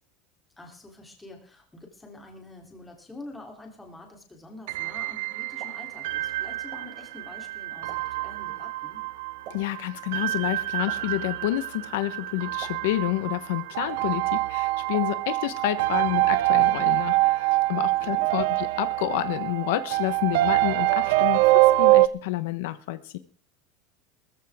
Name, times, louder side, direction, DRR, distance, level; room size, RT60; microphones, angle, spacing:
voice 1, 0.6-9.0 17.7-18.3, left 2 dB, 5° left, 1 dB, 3.2 m, -46 dB
sound 1, 4.7-22.1, right 18 dB, 75° right, 0.7 m, -25 dB
Explosion, 5.3-15.6, right 7 dB, 45° right, 6.7 m, -52 dB
voice 2, 9.5-23.2, left 16 dB, 80° left, 12 dB, 1.0 m, -29 dB
20.0 x 14.0 x 3.6 m, 0.42 s
cardioid pair, 170°, 0 cm